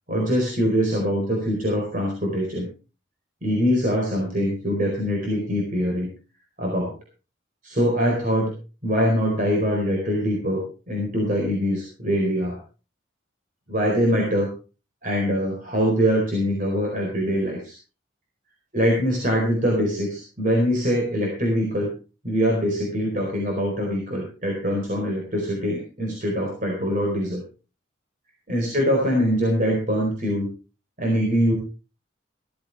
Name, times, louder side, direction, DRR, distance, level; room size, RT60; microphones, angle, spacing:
voice 1, 0.1-2.7 3.4-6.1 6.6-6.9 7.6-8.5 8.8-12.6 13.7-14.5 15.0-17.7 18.7-21.9 22.2-27.4 28.5-30.5 31.0-31.5, equal, 45° right, -1 dB, 4.4 m, -23 dB
16.0 x 14.5 x 3.5 m, 0.33 s
head